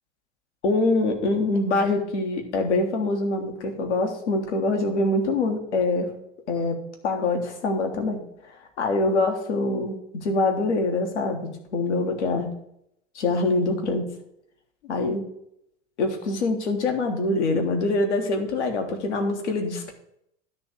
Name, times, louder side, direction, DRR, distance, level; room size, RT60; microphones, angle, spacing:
voice 1, 0.6-6.1 6.5-6.8 7.0-8.2 8.8-12.5 13.1-14.0 14.8-15.2 16.0-19.9, left 2 dB, 70° left, 4 dB, 1.5 m, -24 dB
10.5 x 3.5 x 6.5 m, 0.75 s
figure-of-eight pair, 80°, 35 cm